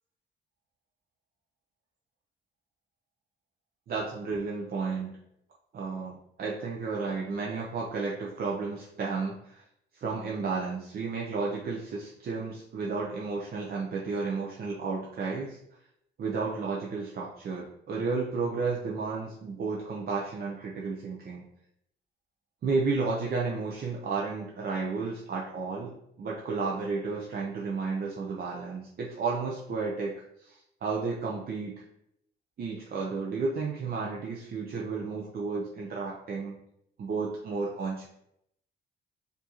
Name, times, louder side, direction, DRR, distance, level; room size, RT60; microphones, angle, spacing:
voice 1, 3.9-5.1 5.7-9.6 9.9-15.6 16.2-21.4 22.6-31.8 32.6-36.6 37.0-38.1, right 4 dB, 50° right, -3 dB, 0.6 m, -32 dB
4.4 x 2.6 x 2.9 m, 0.75 s
cardioid pair, 90°, 20 cm